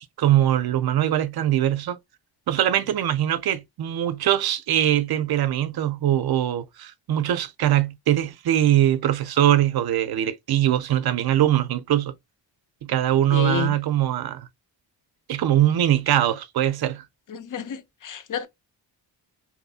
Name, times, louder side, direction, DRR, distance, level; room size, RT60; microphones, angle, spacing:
voice 1, 0.2-2.0 2.5-12.1 12.8-14.5 15.3-17.0, right 12 dB, 55° right, 0.5 m, -22 dB
voice 2, 13.3-13.7 17.3-18.5, left 9 dB, 40° left, 0.6 m, -30 dB
2.7 x 2.6 x 2.3 m
cardioid pair, 75°, 47 cm